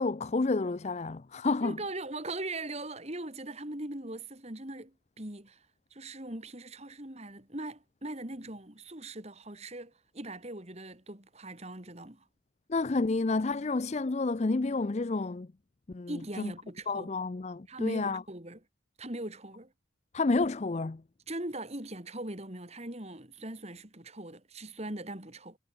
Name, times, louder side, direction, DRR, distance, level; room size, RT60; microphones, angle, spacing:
voice 1, 0.0-1.8 12.7-15.5 15.9-16.5 16.9-18.2 20.1-21.0, left 3 dB, 35° left, 0.5 m, -30 dB
voice 2, 1.6-5.6 5.9-12.2 16.1-17.1 17.7-18.6 19.0-19.7 21.3-25.6, right 1 dB, 35° right, 3.1 m, -40 dB
head